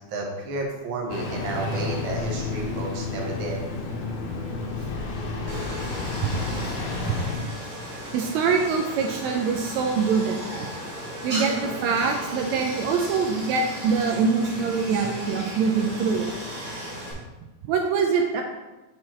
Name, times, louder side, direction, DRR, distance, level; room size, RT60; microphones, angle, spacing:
voice 1, 0.1-3.6, right 2 dB, 55° right, -1 dB, 1.6 m, -31 dB
Engine starting, 1.1-7.4, left 3 dB, 85° left, 2.2 m, -31 dB
Stream, 5.5-17.1, equal, 35° right, 1.4 m, -36 dB
voice 2, 8.1-10.7 11.2-16.3 17.6-18.4, right 5 dB, 80° right, 3 dB, 1.8 m, -24 dB
5.9 x 4.8 x 4.3 m, 1.1 s
omnidirectional pair, 3.3 m